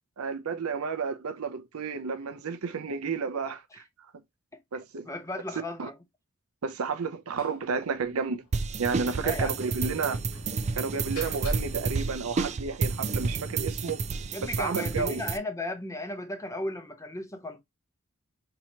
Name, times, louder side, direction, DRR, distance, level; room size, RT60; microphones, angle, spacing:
voice 1, 0.2-3.8 4.7-5.1 5.8-5.9 6.6-8.4 8.8-10.2 10.8-14.0 14.4-15.2, right 5 dB, 85° right, 0.6 m, -31 dB
voice 2, 5.0-5.9 9.2-9.9 14.3-17.6, left 2 dB, 15° left, 0.7 m, -35 dB
Slam, 7.4-7.7 8.0-8.1 8.4-8.5 10.3-12.9, equal, 90° left, 1.5 m, -40 dB
sound 1, 8.5-15.4, right 4 dB, 30° right, 0.4 m, -31 dB
4.6 x 2.8 x 2.8 m
head